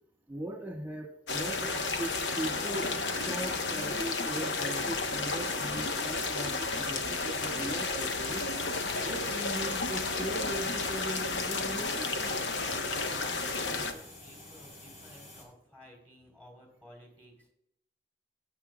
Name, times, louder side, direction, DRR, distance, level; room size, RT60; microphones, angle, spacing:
voice 1, 0.3-8.4 9.0-12.2, right 1 dB, 10° right, 2 dB, 1.7 m, -39 dB
sound 1, 1.3-13.9, left 3 dB, 75° left, 1.0 m, -32 dB
sound 2, 8.4-15.4, left 2 dB, 50° left, 3.8 m, -50 dB
voice 2, 13.0-17.5, equal, 10° left, 0 dB, 3.4 m, -54 dB
18.0 x 7.7 x 2.3 m, 0.78 s
head